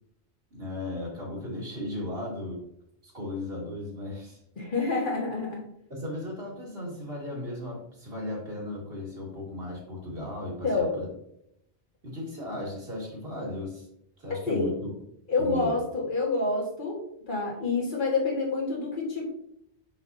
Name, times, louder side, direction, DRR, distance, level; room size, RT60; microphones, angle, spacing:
voice 1, 0.5-2.6 3.0-4.4 5.9-11.1 12.0-13.9 14.2-14.9 15.4-15.7, left 1 dB, 60° right, -3 dB, 2.0 m, -36 dB
voice 2, 4.6-5.6 10.6-11.0 14.5-14.7 15.3-17.0 17.3-19.3, left 3 dB, 50° left, -3 dB, 1.7 m, -27 dB
6.0 x 5.8 x 2.7 m, 0.75 s
omnidirectional pair, 1.1 m